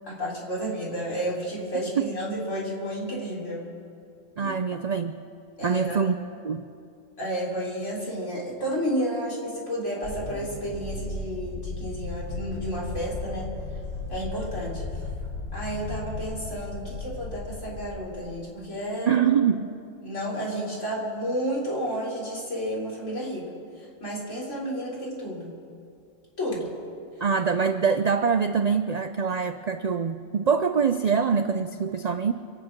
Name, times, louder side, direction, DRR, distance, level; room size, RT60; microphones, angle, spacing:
voice 1, 0.1-3.7 4.4-4.5 5.6-6.0 7.2-13.5 14.1-15.0 15.5-19.1 20.0-23.5 23.8-25.5 26.4-26.7, equal, 70° left, -5 dB, 4.0 m, -31 dB
voice 2, 4.4-5.2 5.6-6.2 6.4-6.6 19.1-19.7 27.2-32.3, right 6 dB, 75° right, 9 dB, 0.3 m, -24 dB
sound 1, 10.0-18.2, left 3 dB, 45° left, 4.1 m, -35 dB
26.0 x 8.8 x 6.0 m, 2.5 s
omnidirectional pair, 1.3 m